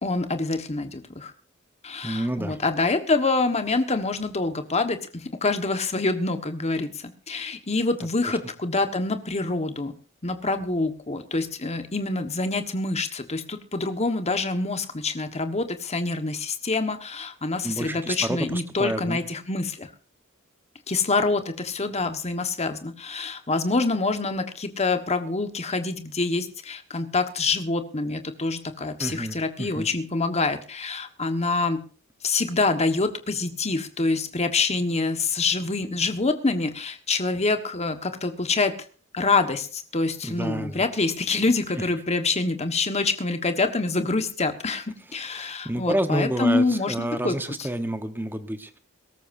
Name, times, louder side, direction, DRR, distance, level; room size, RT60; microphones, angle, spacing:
voice 1, 0.0-1.3 1.8-9.9 10.2-19.9 20.9-31.8 32.2-38.7 39.1-47.7, left 3 dB, 30° left, 7 dB, 1.4 m, -26 dB
voice 2, 2.0-2.6 8.2-8.4 17.6-19.2 29.0-29.9 40.2-40.8 45.3-48.8, right 1 dB, 10° right, 9 dB, 1.1 m, -29 dB
22.5 x 13.5 x 2.7 m, 0.41 s
head